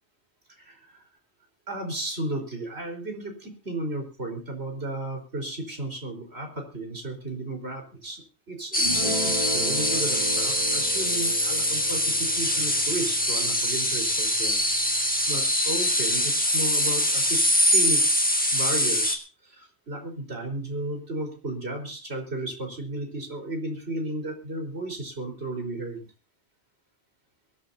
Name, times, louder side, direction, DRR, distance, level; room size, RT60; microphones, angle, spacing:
voice 1, 0.6-1.0 1.7-14.6 15.3-18.0 18.5-26.1, right 2 dB, 65° right, 2 dB, 5.0 m, -34 dB
sound 1, 8.7-19.1, left 1 dB, 5° left, 1.9 m, -24 dB
Guitar, 8.8-15.4, right 1 dB, 25° right, 5.6 m, -37 dB
23.0 x 13.5 x 2.8 m, 0.34 s
omnidirectional pair, 1.2 m